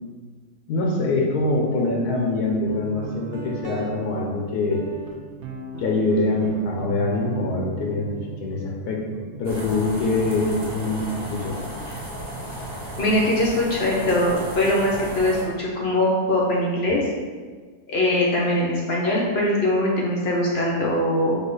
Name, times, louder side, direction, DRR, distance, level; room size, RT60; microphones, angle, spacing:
voice 1, 0.7-4.8 5.8-11.6, left 2 dB, 80° left, 0 dB, 1.2 m, -24 dB
Guitar, 2.7-12.2, right 5 dB, 70° right, 0.7 m, -39 dB
sound 1, 9.4-15.4, equal, 35° right, 0.7 m, -34 dB
voice 2, 13.0-17.0 17.9-21.4, left 1 dB, 55° left, -3 dB, 0.8 m, -22 dB
4.1 x 2.8 x 3.9 m, 1.5 s
omnidirectional pair, 1.6 m